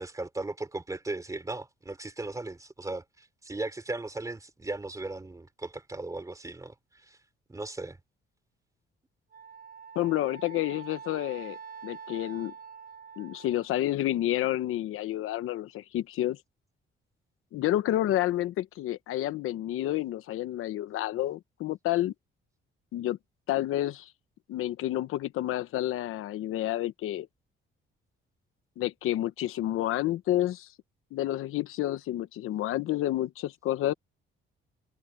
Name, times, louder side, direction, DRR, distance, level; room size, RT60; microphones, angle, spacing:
voice 1, 0.0-7.2 7.5-8.0, right 2 dB, 15° right, 3.3 m, -37 dB
Wind instrument woodwind instrument, 9.3-13.7, right 7 dB, 45° right, 7.4 m, -45 dB
voice 2, 9.9-11.6 11.8-12.5 13.2-16.4 17.5-22.1 22.9-23.2 23.5-24.1 24.5-27.3 28.8-30.7 31.1-33.9, left 14 dB, 90° left, 1.1 m, -29 dB
cardioid pair, 115°, 21 cm